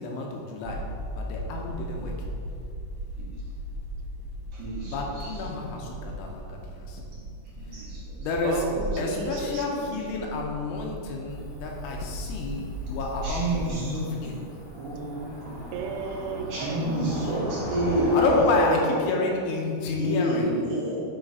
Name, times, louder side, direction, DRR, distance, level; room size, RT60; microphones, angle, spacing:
voice 1, 0.0-2.3 4.8-7.0 8.2-8.6 9.0-14.4 17.2-17.5 18.1-20.6, left 3 dB, 80° left, 0 dB, 3.1 m, -30 dB
sound 1, 0.6-13.7, right 1 dB, 55° right, 2.3 m, -37 dB
voice 2, 4.5-5.4 7.6-8.0 9.0-9.1 9.8-9.9 13.2-14.3 14.7-15.6 16.5-19.1 20.0-21.0, right 1 dB, 75° right, -8 dB, 2.1 m, -28 dB
voice 3, 8.4-9.7 15.7-16.9, right 4 dB, 90° right, 3 dB, 3.2 m, -33 dB
Cricket / Motor vehicle (road), 11.3-18.4, equal, 55° left, 2.7 m, -39 dB
8.9 x 3.2 x 5.3 m, 2.5 s
omnidirectional pair, 5.6 m